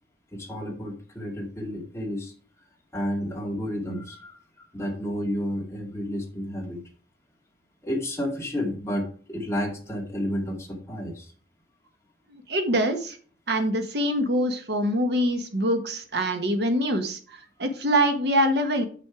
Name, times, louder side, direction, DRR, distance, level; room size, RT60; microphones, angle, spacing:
voice 1, 0.3-2.3 2.9-4.4 4.7-6.8 7.8-11.3, equal, 15° left, 0 dB, 2.1 m, -31 dB
voice 2, 12.3-13.2 13.5-17.2 17.6-18.8, equal, 65° right, 6 dB, 1.3 m, -24 dB
7.6 x 6.1 x 4.8 m, 0.42 s
head